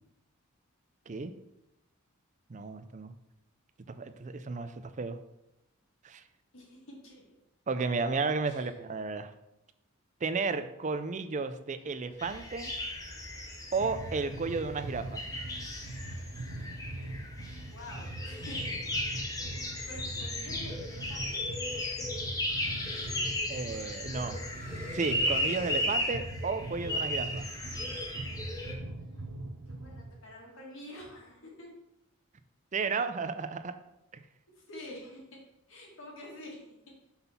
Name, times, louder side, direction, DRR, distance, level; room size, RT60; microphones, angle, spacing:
voice 1, 2.5-3.1 3.9-5.2 6.0-6.2 7.7-9.3 10.2-12.7 13.7-15.3 23.5-24.4 24.9-27.4 32.7-33.7 34.1-34.2, right 4 dB, 35° right, 10 dB, 0.5 m, -33 dB
voice 2, 6.5-7.2 8.4-8.7 10.8-11.1 17.7-18.6 19.8-21.4 28.8-29.4 29.7-31.7 34.5-35.4 35.7-36.9, left 1 dB, 65° left, -3 dB, 2.0 m, -48 dB
sound 1, 11.8-12.9 13.5-20.2 20.5-23.3 24.1-26.2 27.1-28.3, left 1 dB, 35° left, 1.5 m, -54 dB
sound 2, 12.2-28.7, left 1 dB, 15° left, 0.9 m, -36 dB
sound 3, 13.8-30.2, right 1 dB, 70° right, 0.7 m, -42 dB
5.7 x 4.0 x 5.7 m, 0.87 s
head